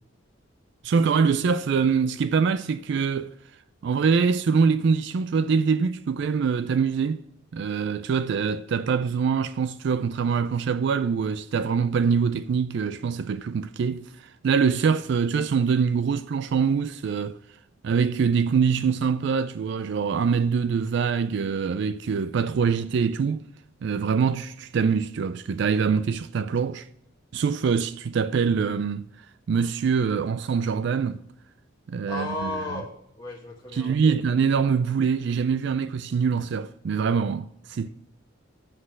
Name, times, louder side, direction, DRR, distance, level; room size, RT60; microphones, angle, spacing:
voice 1, 0.8-3.3 3.8-7.2 7.5-17.4 17.8-23.5 23.8-26.9 27.3-29.1 29.5-31.2 31.9-32.8 33.7-37.9, right 6 dB, 60° right, 0.3 m, -24 dB
voice 2, 32.1-32.9 33.2-34.2 37.8-37.9, left 2 dB, 20° left, 1.2 m, -34 dB
7.5 x 6.3 x 7.6 m
head